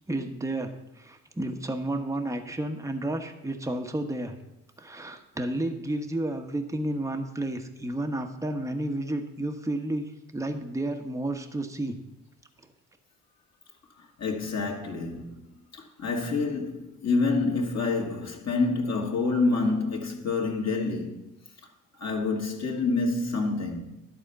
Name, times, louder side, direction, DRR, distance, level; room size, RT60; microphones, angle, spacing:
voice 1, 0.1-0.7 1.0-4.4 4.8-12.0, right 1 dB, 5° right, 1.1 m, -31 dB
voice 2, 14.0-15.4 15.7-21.2 22.0-23.9, left 3 dB, 40° left, 2.0 m, -27 dB
11.5 x 4.3 x 6.8 m
hypercardioid pair, 55°, 41 cm